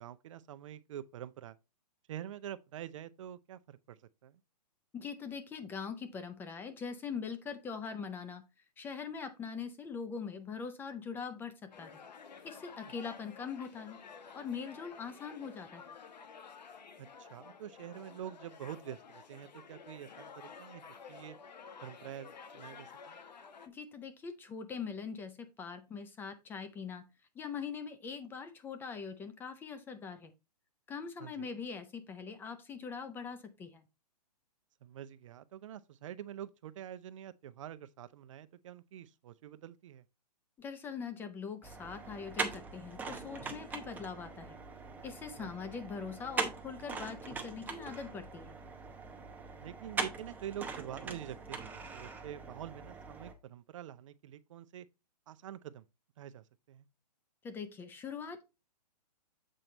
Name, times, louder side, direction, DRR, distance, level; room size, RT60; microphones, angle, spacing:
voice 1, 0.0-1.6 2.1-4.4 12.8-12.9 17.0-21.4 21.8-23.2 31.2-31.5 34.8-40.0 45.4-45.5 49.6-54.9 55.3-55.8 56.2-56.8, right 11 dB, 50° right, 0.5 m, -46 dB
voice 2, 4.9-8.4 8.8-12.0 12.4-14.0 14.3-15.8 23.7-27.1 27.4-30.3 30.9-33.8 40.6-44.6 45.0-48.6 57.4-58.4, left 6 dB, 10° left, 0.5 m, -42 dB
sound 1, 11.7-23.7, left 6 dB, 85° left, 1.2 m, -52 dB
sound 2, 41.6-53.3, right 4 dB, 10° right, 0.8 m, -41 dB
7.6 x 4.5 x 3.9 m
hypercardioid pair, 145°, 21 cm